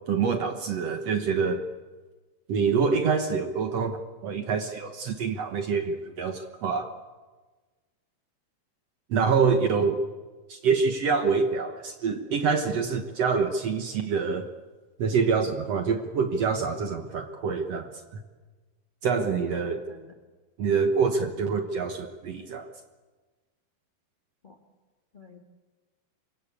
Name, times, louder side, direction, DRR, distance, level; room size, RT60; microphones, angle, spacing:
voice 1, 0.1-1.7 2.5-6.9 9.1-10.0 10.5-14.5 15.0-17.9 19.0-19.8 20.6-22.7, right 5 dB, 70° right, 7 dB, 1.6 m, -26 dB
voice 2, 19.1-20.1 24.4-24.6 25.1-25.4, left 3 dB, 35° left, 4 dB, 0.8 m, -45 dB
27.0 x 23.5 x 8.4 m, 1.3 s
omnidirectional pair, 4.7 m